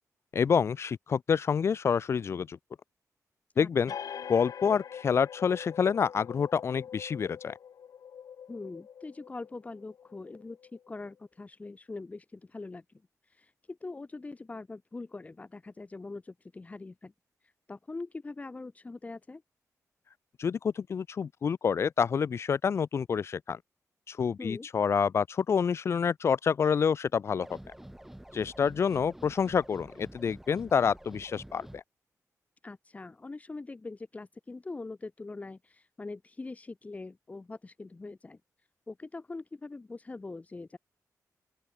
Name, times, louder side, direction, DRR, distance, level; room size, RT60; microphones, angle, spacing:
voice 1, 0.3-2.6 3.6-3.9 4.3-7.5 20.4-23.6 24.1-27.6 28.3-31.8, left 6 dB, 45° left, 0.5 m, -28 dB
sound 1, 3.9-11.1, left 8 dB, 70° left, 1.5 m, -44 dB
voice 2, 8.5-12.8 13.3-17.1 17.7-19.4 24.4-24.7 32.6-38.4 38.9-40.8, left 3 dB, 25° left, 6.2 m, -42 dB
sound 2, 27.4-31.8, right 1 dB, 5° right, 6.5 m, -48 dB
open air
wide cardioid pair, 155°, 6 cm